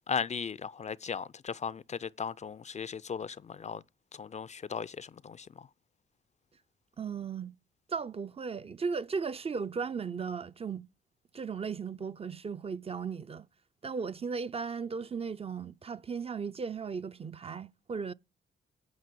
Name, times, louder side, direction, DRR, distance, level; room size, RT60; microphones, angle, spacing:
voice 1, 0.1-3.8 4.2-5.7, left 6 dB, 35° left, 0.4 m, -37 dB
voice 2, 7.0-7.5 7.9-10.9 11.3-13.5 13.8-18.1, right 5 dB, 30° right, 0.5 m, -36 dB
9.5 x 5.2 x 6.6 m
supercardioid pair, 60°, 20 cm